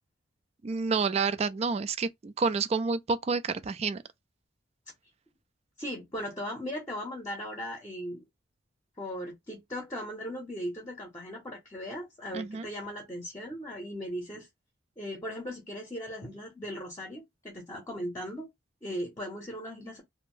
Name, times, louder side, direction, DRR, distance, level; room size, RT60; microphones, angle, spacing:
voice 1, 0.6-4.0 12.3-12.7, right 4 dB, 35° right, 0.3 m, -29 dB
voice 2, 5.8-8.3 9.0-14.5 15.0-18.5 18.8-20.0, equal, 20° left, 0.7 m, -38 dB
2.7 x 2.0 x 3.0 m
head